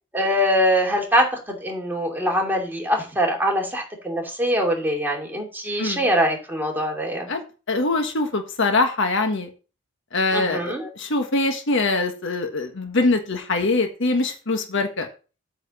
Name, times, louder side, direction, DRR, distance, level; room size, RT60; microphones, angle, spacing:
voice 1, 0.1-7.3 10.3-10.9, equal, 10° right, 0 dB, 2.8 m, -23 dB
voice 2, 7.3-9.5 10.1-15.1, left 3 dB, 65° left, 5 dB, 1.4 m, -23 dB
8.8 x 4.6 x 6.9 m, 0.33 s
head